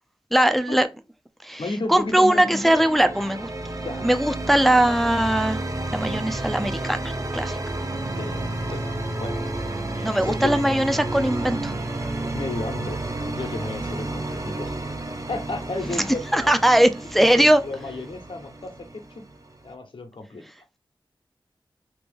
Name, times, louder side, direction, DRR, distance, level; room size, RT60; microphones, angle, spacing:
voice 1, 0.3-0.9 1.4-1.6 1.9-3.5 4.0-5.6 5.9-7.6 10.0-11.7 16.3-17.6, right 1 dB, ahead, 0.4 m, -20 dB
voice 2, 1.6-2.8 3.8-4.1 8.1-9.4 9.9-10.7 12.3-14.8 15.3-16.5 17.2-19.2 19.6-20.4, left 2 dB, 70° left, 1.0 m, -33 dB
sound 1, 2.0-19.7, right 2 dB, 40° right, 0.6 m, -31 dB
2.9 x 2.5 x 3.5 m
cardioid pair, 50°, 9 cm